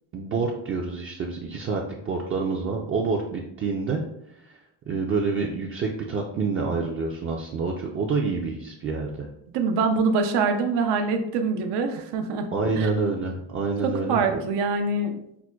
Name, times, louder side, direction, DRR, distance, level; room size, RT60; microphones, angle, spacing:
voice 1, 0.1-4.0 4.4-4.6 4.9-9.3 12.5-14.4, right 4 dB, 35° right, -1 dB, 0.4 m, -27 dB
voice 2, 9.5-12.5 12.8-12.9 13.8-15.2, right 4 dB, 85° right, 5 dB, 0.6 m, -24 dB
5.8 x 2.1 x 2.2 m, 0.75 s
cardioid pair, 120°, 40 cm